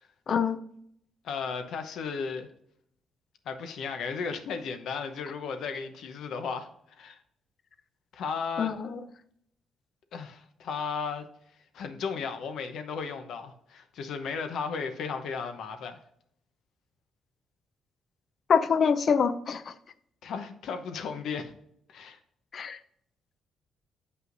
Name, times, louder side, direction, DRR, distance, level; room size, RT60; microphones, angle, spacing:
voice 1, 0.3-0.6 8.6-9.0 18.5-19.7 22.5-22.8, left 6 dB, 50° left, 12 dB, 0.5 m, -25 dB
voice 2, 1.2-2.5 3.5-6.7 7.0-7.2 8.1-8.7 10.1-11.2 11.7-16.0 20.2-21.5 21.9-22.2, left 5 dB, 75° left, 7 dB, 0.8 m, -35 dB
7.7 x 5.5 x 2.6 m, 0.71 s
cardioid pair, 90°, 0 cm